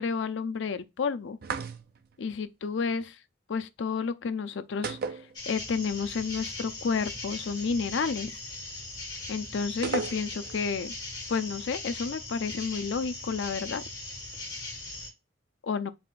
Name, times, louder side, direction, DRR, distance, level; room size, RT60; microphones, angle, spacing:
voice 1, 0.0-1.4 2.2-3.2 3.5-8.4 9.3-10.9 11.3-13.8 15.6-15.9, left 5 dB, 70° left, 0.4 m, -31 dB
sound 1, 1.4-2.1 4.8-5.9 6.1-6.2 9.8-10.6, right 5 dB, 50° right, 0.4 m, -34 dB
sound 2, 5.3-15.1, left 2 dB, 20° left, 1.5 m, -39 dB
4.2 x 2.5 x 3.6 m
head